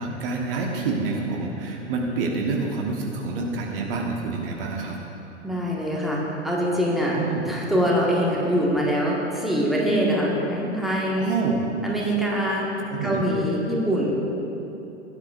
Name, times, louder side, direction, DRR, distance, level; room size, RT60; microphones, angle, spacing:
voice 1, 0.0-5.0 7.2-7.4 11.2-11.6 12.9-13.3, right 4 dB, 50° right, 0 dB, 1.4 m, -27 dB
voice 2, 5.4-7.2 7.4-11.3 11.8-12.7 13.0-14.2, equal, ahead, -4 dB, 1.7 m, -24 dB
17.0 x 10.0 x 2.6 m, 3.0 s
figure-of-eight pair, 100°, 36 cm